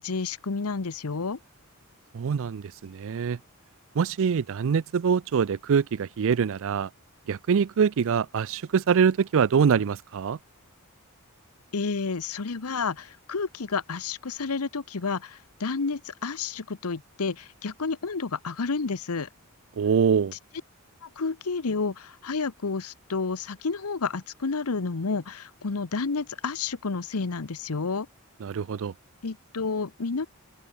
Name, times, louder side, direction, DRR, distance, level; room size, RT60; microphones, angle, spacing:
voice 1, 0.0-1.4 11.7-19.3 21.0-28.1 29.2-30.3, left 4 dB, 80° left, 0.9 m, -30 dB
voice 2, 2.1-3.4 4.0-6.9 7.3-10.4 19.8-20.3 28.4-28.9, right 6 dB, 65° right, 0.4 m, -24 dB
open air
head